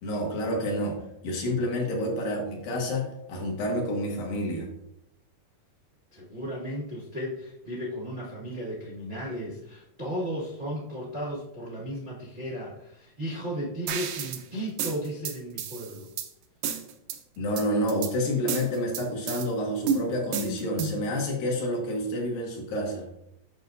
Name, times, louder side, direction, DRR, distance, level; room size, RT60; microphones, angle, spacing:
voice 1, 0.0-4.7 17.4-23.1, equal, 70° left, -1 dB, 3.1 m, -29 dB
voice 2, 6.1-16.1, equal, 70° right, -7 dB, 0.4 m, -35 dB
sound 1, 13.9-14.4 14.8-16.3 16.6-17.2 17.6-18.1 18.5-19.5 19.9-21.1, right 6 dB, 90° right, 1.5 m, -31 dB
8.5 x 6.5 x 2.6 m, 0.81 s
omnidirectional pair, 4.1 m